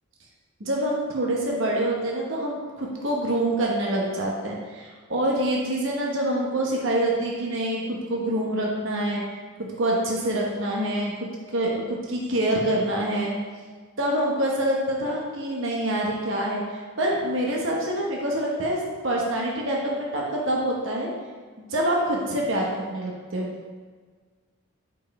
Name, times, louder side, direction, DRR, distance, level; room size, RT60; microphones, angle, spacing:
voice 1, 0.6-13.4 14.0-21.1 21.6-23.5, right 1 dB, 60° right, -2 dB, 1.0 m, -26 dB
5.3 x 4.6 x 4.1 m, 1.5 s
head